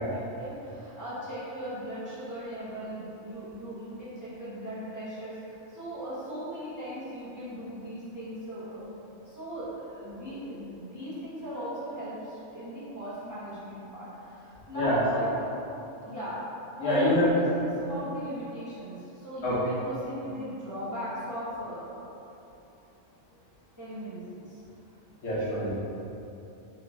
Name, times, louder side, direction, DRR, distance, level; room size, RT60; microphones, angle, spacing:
voice 1, 0.0-15.5 16.0-16.4 16.8-22.0 23.3-23.4 23.8-24.6, equal, 15° right, -12 dB, 1.1 m, -38 dB
voice 2, 16.8-17.3 19.4-19.6 25.2-25.7, left 1 dB, 85° left, -9 dB, 1.5 m, -25 dB
3.7 x 3.4 x 3.3 m, 3.0 s
omnidirectional pair, 1.3 m